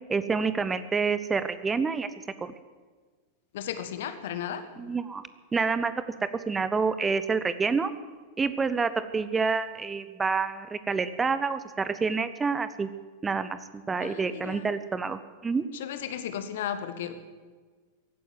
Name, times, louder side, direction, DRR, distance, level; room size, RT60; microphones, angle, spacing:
voice 1, 0.1-2.1 2.4-2.5 4.8-5.2 5.5-6.0 6.5-7.9 8.4-12.9 13.2-15.7, right 5 dB, 15° right, 13 dB, 0.7 m, -28 dB
voice 2, 3.5-4.7 14.0-14.7 15.7-17.1, left 9 dB, 55° left, 10 dB, 1.4 m, -35 dB
16.0 x 9.3 x 9.4 m, 1.4 s
figure-of-eight pair, 90°, 0 cm